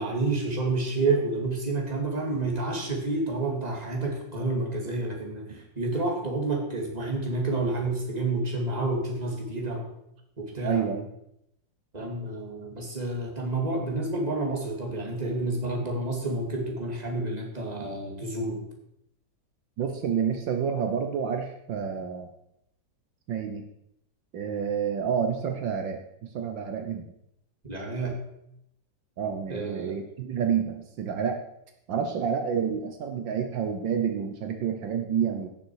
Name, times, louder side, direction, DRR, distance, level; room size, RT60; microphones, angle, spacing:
voice 1, 0.0-9.9 10.4-10.8 11.9-18.6 27.6-28.2 29.5-30.0, right 2 dB, 20° right, 0 dB, 2.5 m, -29 dB
voice 2, 10.6-11.1 19.8-22.3 23.3-23.6 24.3-27.1 29.2-31.4 31.9-35.5, right 7 dB, 75° right, 5 dB, 1.7 m, -29 dB
16.5 x 6.8 x 4.7 m, 0.78 s
omnidirectional pair, 2.1 m